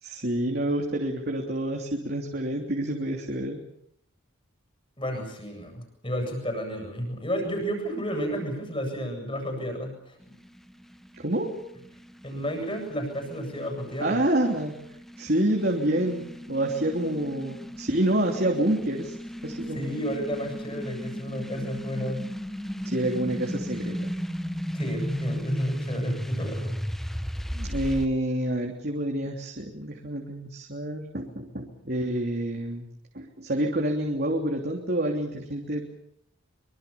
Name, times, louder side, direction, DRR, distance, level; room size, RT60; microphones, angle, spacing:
voice 1, 0.0-3.6 11.1-11.5 14.0-14.7 15.2-19.2 19.4-20.0 22.8-24.1 27.5-32.9 33.1-35.9, right 1 dB, 45° right, 1 dB, 3.1 m, -28 dB
voice 2, 5.0-10.1 12.2-14.2 19.7-22.2 24.7-26.7, equal, 25° left, 5 dB, 7.9 m, -32 dB
sound 1, 10.2-28.1, equal, ahead, 1.1 m, -35 dB
25.0 x 24.5 x 7.1 m, 0.73 s
head